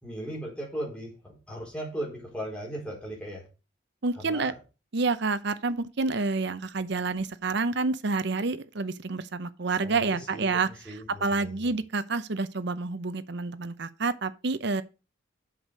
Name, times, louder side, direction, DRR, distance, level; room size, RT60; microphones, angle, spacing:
voice 1, 0.0-3.5 4.2-4.6 9.8-11.7, equal, 5° left, 4.1 m, -38 dB
voice 2, 4.0-4.5 4.9-14.8, right 3 dB, 60° right, 0.8 m, -28 dB
7.8 x 6.4 x 5.1 m
head